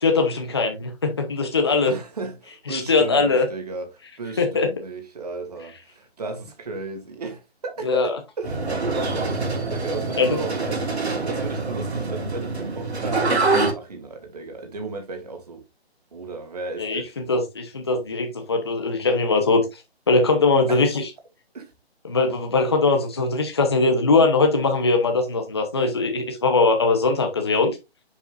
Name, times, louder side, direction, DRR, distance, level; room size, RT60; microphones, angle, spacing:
voice 1, 0.0-1.9 2.7-3.5 4.4-4.7 7.8-8.2 10.2-10.4 16.8-17.0 17.3-19.8 20.1-21.0 22.1-27.8, left 3 dB, 25° left, 0.9 m, -21 dB
voice 2, 1.9-15.6 16.1-17.3 20.7-20.9 21.5-21.7, right 3 dB, 40° right, 2.0 m, -35 dB
sound 1, 8.4-13.7, right 3 dB, 80° right, 3.0 m, -25 dB
7.0 x 7.0 x 2.5 m
hypercardioid pair, 175°, 32 cm